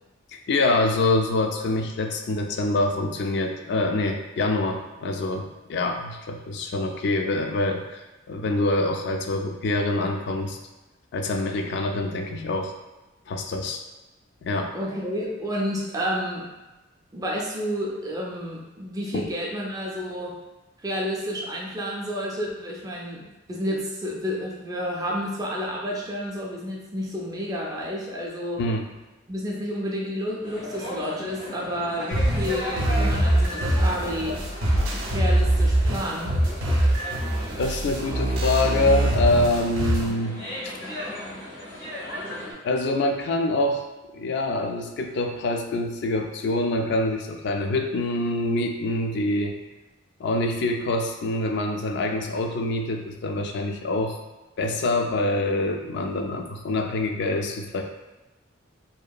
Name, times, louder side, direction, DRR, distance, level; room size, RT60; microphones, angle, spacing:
voice 1, 0.5-10.6 11.1-12.7 13.3-13.8 14.4-14.7 19.1-19.3 28.6-28.9 37.6-40.4 40.6-40.8 42.6-43.8 44.1-49.5 50.2-54.2 54.6-57.8, left 2 dB, 60° left, 4 dB, 0.3 m, -25 dB
voice 2, 14.7-16.4 17.1-20.3 20.8-28.6 29.3-34.4 35.1-36.3, equal, 20° right, -3 dB, 0.4 m, -30 dB
sound 1, 30.4-42.5, left 1 dB, 85° left, 1.0 m, -36 dB
sound 2, 32.1-40.1, right 1 dB, 85° right, 0.5 m, -23 dB
2.7 x 2.4 x 2.2 m, 1.1 s
head